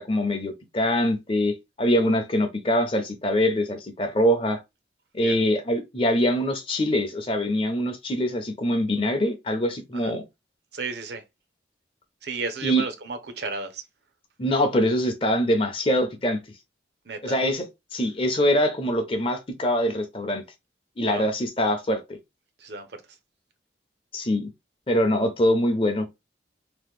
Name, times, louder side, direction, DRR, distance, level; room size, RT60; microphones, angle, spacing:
voice 1, 0.0-4.6 5.1-10.2 12.6-12.8 14.4-16.4 17.2-17.7 17.9-20.4 21.0-22.0 24.1-24.5 24.9-26.1, equal, 30° left, 0.6 m, -24 dB
voice 2, 10.7-11.2 12.2-13.8 17.1-17.4 21.0-21.3 22.6-22.9, right 4 dB, 60° right, 0.6 m, -33 dB
2.9 x 2.1 x 3.4 m
head